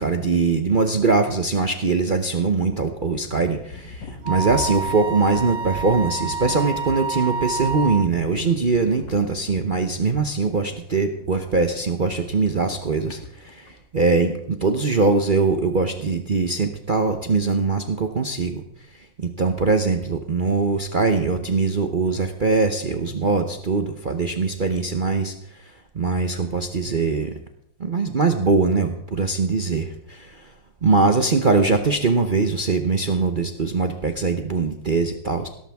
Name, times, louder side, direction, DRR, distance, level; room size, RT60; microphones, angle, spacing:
voice 1, 0.0-18.6 19.2-25.3 25.9-27.3 27.8-30.5 30.8-35.5, right 4 dB, 45° right, 5 dB, 0.7 m, -22 dB
sound 1, 2.6-13.7, left 3 dB, 80° left, 2.3 m, -40 dB
Wind instrument woodwind instrument, 4.2-8.1, right 4 dB, 75° right, 1.7 m, -28 dB
17.0 x 13.5 x 3.5 m, 0.72 s
omnidirectional pair, 2.0 m